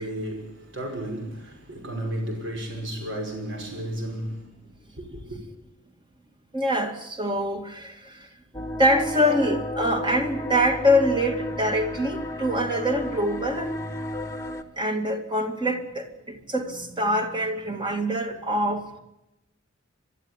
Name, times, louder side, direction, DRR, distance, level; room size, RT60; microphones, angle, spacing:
voice 1, 0.0-4.5 5.0-5.4, right 1 dB, 60° right, 5.7 m, -33 dB
voice 2, 6.5-8.3 8.8-13.7 14.8-19.0, equal, 25° right, 2.1 m, -24 dB
sound 1, 8.5-14.6, left 1 dB, 15° left, 1.3 m, -32 dB
22.5 x 12.5 x 9.8 m
head